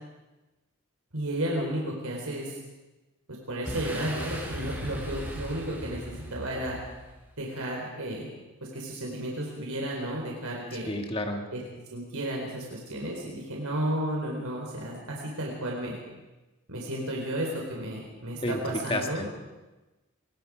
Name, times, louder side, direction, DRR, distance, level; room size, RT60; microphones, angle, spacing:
voice 1, 1.1-2.6 3.5-6.8 7.4-8.3 8.6-10.9 11.5-11.6 11.9-16.0 16.7-19.3, right 1 dB, 90° right, -1 dB, 4.5 m, -33 dB
Boom, 3.6-7.3, equal, 10° right, 4.3 m, -38 dB
voice 2, 10.7-11.5 18.4-19.3, left 1 dB, 25° left, 4 dB, 1.7 m, -31 dB
24.5 x 22.0 x 5.1 m, 1.1 s
head